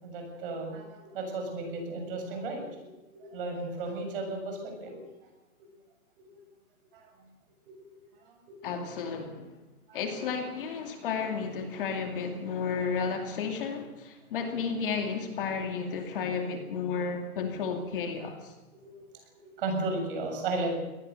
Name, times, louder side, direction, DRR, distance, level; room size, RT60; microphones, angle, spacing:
voice 1, 0.0-5.0 6.9-7.1 7.7-7.8 8.3-8.4 9.9-10.0 18.8-18.9 19.4-20.8, right 2 dB, 35° right, 3 dB, 7.2 m, -34 dB
voice 2, 8.6-9.6 9.9-18.5, left 5 dB, 35° left, 4 dB, 2.5 m, -32 dB
24.5 x 18.5 x 6.9 m, 1.1 s
hypercardioid pair, 175°, 44 cm